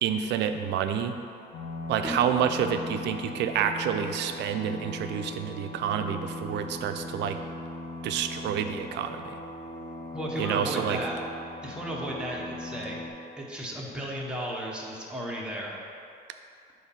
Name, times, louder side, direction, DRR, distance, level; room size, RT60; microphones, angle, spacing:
voice 1, 0.0-1.2 1.9-7.4 8.0-9.4 10.4-11.0, right 8 dB, 75° right, 7 dB, 0.5 m, -28 dB
sound 1, 1.5-13.1, left 1 dB, 40° left, 0.8 m, -39 dB
voice 2, 10.1-11.2 11.6-15.7, right 1 dB, 5° right, -4 dB, 0.9 m, -34 dB
7.8 x 2.7 x 5.6 m, 2.5 s
cardioid pair, 155°, 18 cm